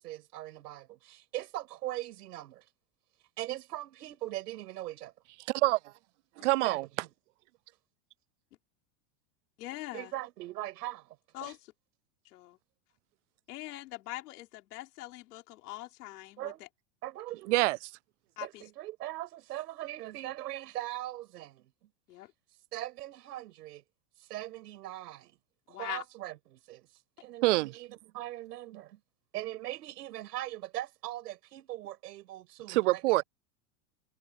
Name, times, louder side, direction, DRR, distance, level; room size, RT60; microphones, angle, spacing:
voice 1, 0.0-2.6 3.4-5.1 6.6-6.8 9.9-11.2 11.4-11.5 16.4-16.7 17.0-17.5 18.4-21.9 22.7-23.8 24.2-25.4 25.7-26.9 27.2-29.0 29.3-33.2, right 15 dB, 85° right, 7.4 m, -40 dB
voice 2, 5.5-5.9 6.4-6.8 17.5-17.9 27.4-27.7 32.7-33.2, right 21 dB, 50° right, 0.5 m, -26 dB
voice 3, 9.6-10.1 11.3-11.6 12.3-12.6 13.5-16.7 18.4-18.6 22.1-22.3 25.7-26.0, left 17 dB, 75° left, 4.5 m, -42 dB
supercardioid pair, 175°, 46 cm